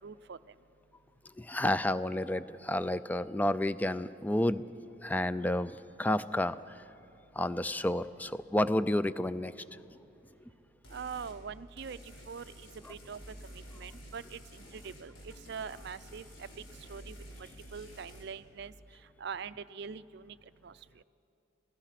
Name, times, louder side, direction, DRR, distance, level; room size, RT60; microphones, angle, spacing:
voice 1, 0.0-0.4 10.9-12.4 12.9-13.2 13.5-14.4 14.7-16.5 16.9-18.7 19.2-20.4 20.6-20.7, right 6 dB, 60° right, 15 dB, 0.5 m, -43 dB
voice 2, 1.2-4.6 5.0-6.9 7.3-9.6 9.9-10.0 12.8-12.9, left 1 dB, 10° left, 14 dB, 0.4 m, -31 dB
sound 1, 10.8-11.4 11.8-18.2, equal, 90° left, 4.5 m, -50 dB
27.5 x 16.5 x 5.9 m, 2.8 s
head